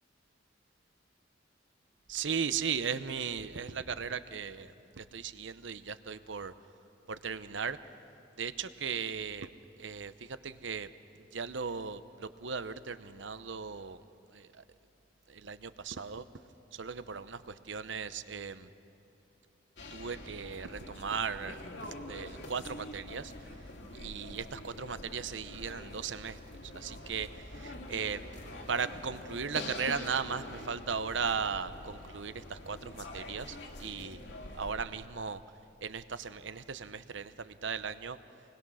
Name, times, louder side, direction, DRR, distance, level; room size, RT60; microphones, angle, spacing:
voice 1, 2.1-6.5 7.1-7.8 8.4-9.5 9.8-10.9 11.3-14.0 14.3-14.6 15.3-16.2 16.7-18.7 19.9-23.3 23.9-26.4 26.7-27.3 27.5-28.3 28.7-34.2 34.5-35.4 35.8-38.2, right 6 dB, 70° right, 12 dB, 0.8 m, -37 dB
sound 1, 19.8-34.8, left 1 dB, 65° left, 2.1 m, -45 dB
27.0 x 20.5 x 6.3 m, 2.7 s
head